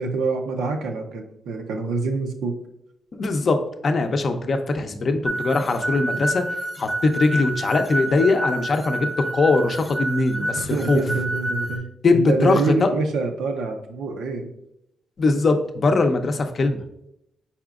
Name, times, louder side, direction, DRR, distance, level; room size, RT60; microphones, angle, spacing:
voice 1, 0.0-2.6 10.4-14.5, right 3 dB, 90° right, 4 dB, 0.6 m, -26 dB
voice 2, 3.1-6.4 6.8-11.0 12.0-12.9 15.2-16.8, left 3 dB, 50° left, 6 dB, 0.5 m, -21 dB
sound 1, 5.3-11.8, right 1 dB, 5° right, 0.7 m, -28 dB
4.9 x 4.2 x 2.4 m, 0.81 s
cardioid pair, 90°, 0 cm